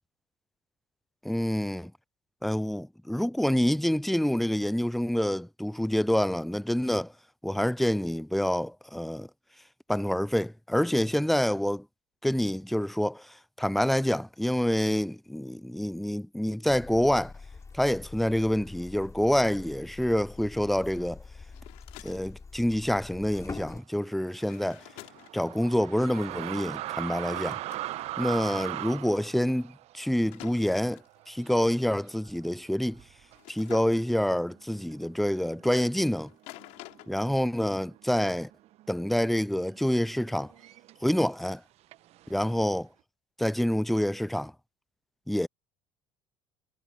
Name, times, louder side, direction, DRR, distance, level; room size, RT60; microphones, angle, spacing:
voice 1, 1.2-1.9 2.4-7.1 7.4-9.3 9.9-11.9 12.2-17.3 17.7-21.2 22.0-24.8 25.3-27.6 28.2-33.0 33.5-36.3 37.1-38.5 38.9-40.5 41.0-41.6 42.3-42.9 43.4-44.5 45.3-45.5, equal, ahead, 0.3 m, -27 dB
sound 1, 16.7-23.8, left 4 dB, 25° left, 5.5 m, -45 dB
sound 2, 19.6-19.7 21.4-22.4 24.3-25.5 27.4-28.1 30.3-31.2 33.3-34.3 36.3-37.1, left 24 dB, 65° left, 3.9 m, -49 dB
sound 3, 24.1-31.7 32.0-32.2 32.9-33.4 34.1-34.2 34.5-36.2 36.5-37.1 37.3-41.1 41.9-42.8, right 15 dB, 55° right, 1.4 m, -39 dB
hypercardioid pair, 65°, 13 cm